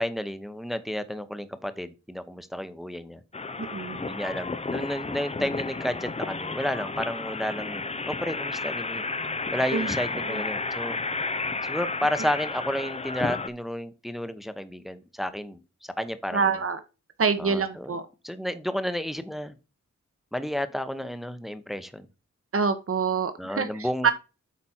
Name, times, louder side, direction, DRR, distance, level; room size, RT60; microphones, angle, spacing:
voice 1, 0.0-3.2 4.0-9.0 9.5-11.0 11.6-16.5 17.4-18.0 18.2-19.5 20.3-22.1 23.4-24.1, equal, ahead, 11 dB, 0.9 m, -31 dB
sound 1, 3.3-13.5, left 3 dB, 20° left, 0.6 m, -32 dB
voice 2, 3.6-4.0 9.7-9.9 10.2-10.4 16.3-16.8 17.2-18.0 22.5-24.1, right 5 dB, 50° right, 9 dB, 1.1 m, -26 dB
8.5 x 5.1 x 4.4 m, 0.30 s
wide cardioid pair, 100°, 29 cm